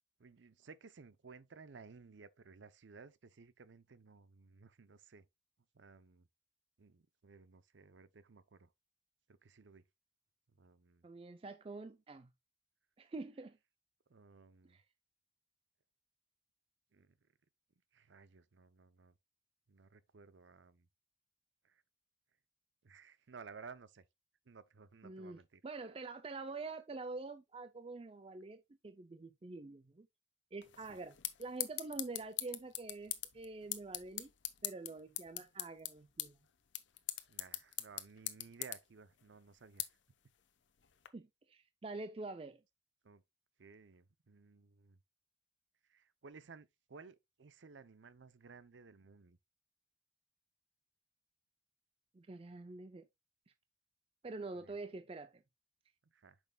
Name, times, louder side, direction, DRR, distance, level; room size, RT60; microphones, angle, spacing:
voice 1, 0.2-5.3 5.7-6.3 6.8-8.7 9.3-9.8 10.6-11.1 14.1-14.8 16.9-17.1 17.9-19.1 19.7-20.9 21.6-21.8 22.8-24.0 24.5-25.6 30.9-31.0 37.3-39.9 43.0-43.2 43.6-45.0 45.9-49.4 54.6-54.7 56.0-56.4, right 5 dB, 85° right, 0.6 m, -57 dB
voice 2, 11.0-12.3 13.0-13.6 14.7-14.8 25.0-30.1 30.5-34.3 34.6-36.4 41.1-42.6 52.1-53.1 54.2-55.4, right 3 dB, 30° right, 0.4 m, -46 dB
sound 1, 30.6-41.1, left 14 dB, 90° left, 0.8 m, -44 dB
8.8 x 6.2 x 2.2 m
head